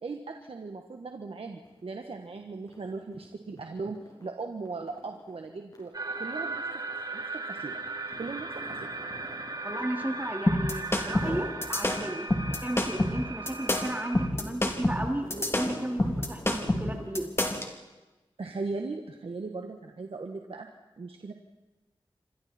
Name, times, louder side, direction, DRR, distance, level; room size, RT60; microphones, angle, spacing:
voice 1, 0.0-5.9 6.2-6.6 7.1-7.8 8.2-8.9 18.4-20.7 21.0-21.3, right 3 dB, 80° right, 3 dB, 1.7 m, -38 dB
sound 1, 1.6-1.8 2.1-10.6 11.0-11.6 12.0-17.2, left 1 dB, 45° left, 6.5 m, -47 dB
sound 2, 5.9-14.3, right 3 dB, 40° right, 1.7 m, -37 dB
voice 2, 9.6-12.3 12.6-17.3, right 1 dB, 20° right, 3 dB, 2.9 m, -34 dB
sound 3, 10.5-17.7, left 1 dB, 25° left, 3.0 m, -27 dB
28.5 x 25.5 x 4.5 m, 1.1 s
wide cardioid pair, 85°, 10 cm